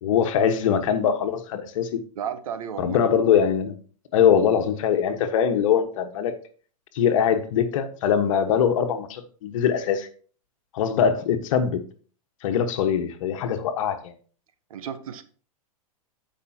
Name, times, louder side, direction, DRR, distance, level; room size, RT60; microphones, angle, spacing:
voice 1, 0.0-2.0 2.8-3.7 4.1-6.3 6.9-10.1 10.7-11.8 12.4-14.1, left 8 dB, 60° left, 1.4 m, -22 dB
voice 2, 2.2-3.0 14.7-15.2, right 8 dB, 70° right, 1.2 m, -33 dB
15.5 x 5.5 x 2.8 m
hypercardioid pair, 110°, 19 cm